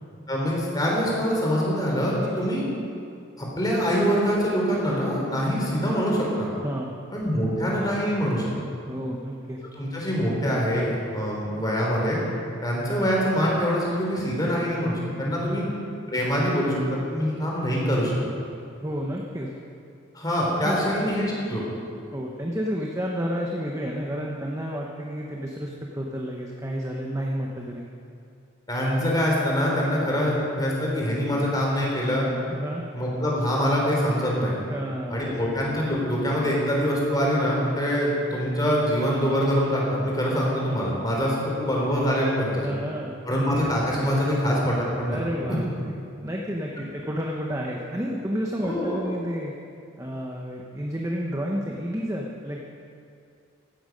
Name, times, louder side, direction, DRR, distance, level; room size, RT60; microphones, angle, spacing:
voice 1, 0.3-2.6 3.4-6.5 7.1-8.5 9.8-12.2 12.6-15.6 16.1-18.1 20.1-21.6 28.7-32.2 32.9-34.5 35.1-42.7 43.2-45.2 45.5-45.6 48.6-49.0, equal, 20° left, -3 dB, 3.5 m, -24 dB
voice 2, 8.9-9.6 15.3-15.6 18.7-19.5 20.6-20.8 22.1-27.9 29.9-30.0 32.5-32.8 34.7-35.6 42.5-43.2 45.1-49.5 50.0-52.6, equal, 15° right, -1 dB, 1.0 m, -31 dB
15.5 x 12.0 x 5.2 m, 2.5 s
head